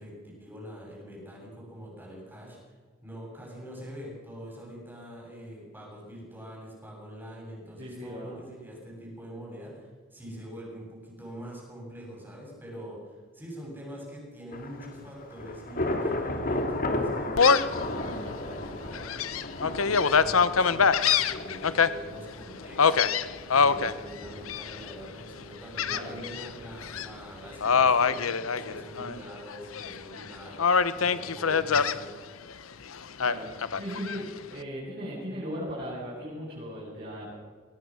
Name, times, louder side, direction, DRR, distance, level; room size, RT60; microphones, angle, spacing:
voice 1, 0.0-2.7 3.0-32.1, equal, 10° right, -3 dB, 7.8 m, -44 dB
voice 2, 7.8-8.4 25.9-26.1 33.2-33.5 33.7-34.2 34.5-37.4, equal, 50° right, -7 dB, 7.3 m, -37 dB
Thunder / Rain, 14.5-28.1, left 1 dB, 45° left, 2.5 m, -36 dB
Gull seagull, 17.4-17.8 18.3-18.4 18.9-21.9 22.8-23.9 24.5-24.9 25.8-26.5 26.8-27.1 27.6-29.2 29.5-30.2 30.6-32.0 33.2-34.2, left 5 dB, 90° left, 0.9 m, -24 dB
23.5 x 17.5 x 6.4 m, 1.5 s
head